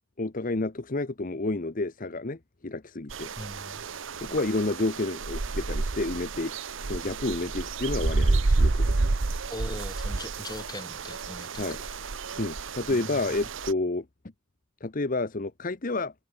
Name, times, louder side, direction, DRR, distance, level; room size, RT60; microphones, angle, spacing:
voice 1, 0.2-3.3 4.2-6.5 6.8-9.1 11.6-11.8 12.4-14.0 14.8-16.1, left 2 dB, 40° left, 0.9 m, -30 dB
sound 1, 3.1-13.7, right 3 dB, 70° right, 0.9 m, -29 dB
voice 2, 3.4-3.8 9.5-12.0 12.9-13.2, left 1 dB, 20° left, 7.8 m, -40 dB
head